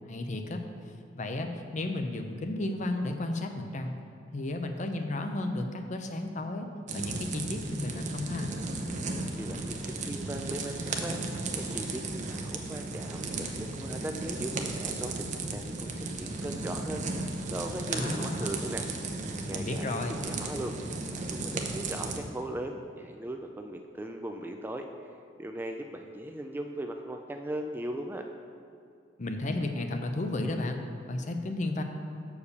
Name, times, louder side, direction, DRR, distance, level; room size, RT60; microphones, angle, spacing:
voice 1, 0.1-0.6 0.9-4.0 4.3-6.7 6.9-8.6 17.9-18.6 19.5-20.2 29.2-31.8, left 2 dB, 40° left, 5 dB, 0.6 m, -33 dB
sound 1, 6.9-22.2, right 3 dB, 40° right, 0.7 m, -35 dB
voice 2, 9.4-11.2 11.5-18.9 19.5-25.1 25.4-28.3, right 1 dB, 10° right, 4 dB, 0.3 m, -39 dB
6.9 x 4.8 x 6.6 m, 2.5 s
head